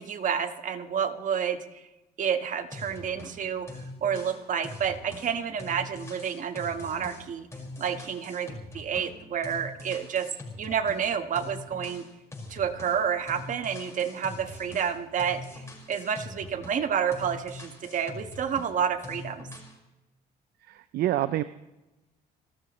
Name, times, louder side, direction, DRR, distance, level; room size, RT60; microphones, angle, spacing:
voice 1, 0.0-1.6 2.2-3.7 4.0-7.5 7.8-10.3 10.6-12.0 12.5-19.5, right 7 dB, 50° right, 8 dB, 1.4 m, -29 dB
sound 1, 2.7-3.4 3.7-9.2 9.4-11.1 11.4-13.0 13.3-16.9 17.1-18.7 19.0-19.8, left 2 dB, 15° left, 5.2 m, -43 dB
voice 2, 20.6-21.4, right 13 dB, 65° right, 13 dB, 0.6 m, -27 dB
29.5 x 13.0 x 3.2 m, 1.0 s
cardioid pair, 110°, 17 cm